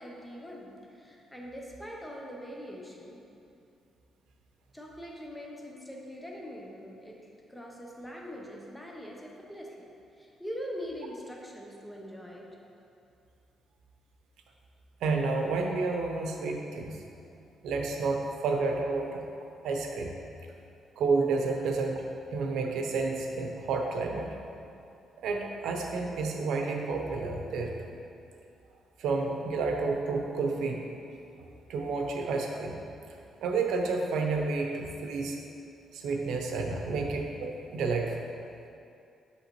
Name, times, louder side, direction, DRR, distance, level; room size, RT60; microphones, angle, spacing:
voice 1, 0.0-3.2 4.7-9.9 10.2-12.5, equal, 5° left, -2 dB, 0.6 m, -42 dB
voice 2, 15.0-17.0 17.6-19.2 19.6-20.2 21.0-22.0 22.3-24.3 25.2-28.0 29.0-30.8 31.4-32.8 33.4-35.4 35.9-38.2, right 3 dB, 90° right, 2 dB, 0.6 m, -30 dB
6.5 x 5.6 x 2.9 m, 2.6 s
cardioid pair, 155°, 0 cm